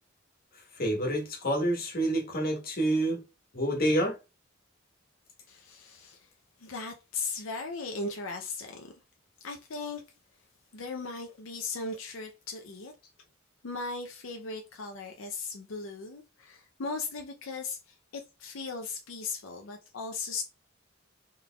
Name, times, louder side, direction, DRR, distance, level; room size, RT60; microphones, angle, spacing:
voice 1, 0.8-3.2 3.5-4.1, right 1 dB, 45° left, 1.3 m, -28 dB
voice 2, 5.5-6.3 6.6-8.9 9.4-10.0 10.7-12.9 13.6-17.8 18.1-20.4, left 3 dB, 85° left, 0.6 m, -37 dB
3.8 x 3.3 x 2.3 m
head